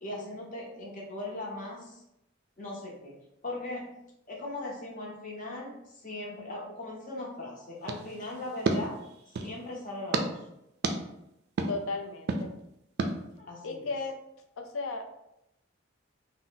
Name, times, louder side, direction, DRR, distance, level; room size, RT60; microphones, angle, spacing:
voice 1, 0.0-2.0 2.6-3.1 3.4-4.0 4.3-8.9 9.4-10.3 13.4-13.9, left 2 dB, 40° left, -2 dB, 0.7 m, -39 dB
sound 1, 7.8-9.6 10.1-10.3 10.8-11.0 11.6-11.7 12.3-12.4 13.0-13.1, right 3 dB, 50° right, 0.3 m, -30 dB
voice 2, 11.7-12.5 13.6-14.1 14.6-15.1, left 3 dB, 85° left, 5 dB, 0.4 m, -35 dB
2.7 x 2.0 x 3.8 m, 0.85 s
head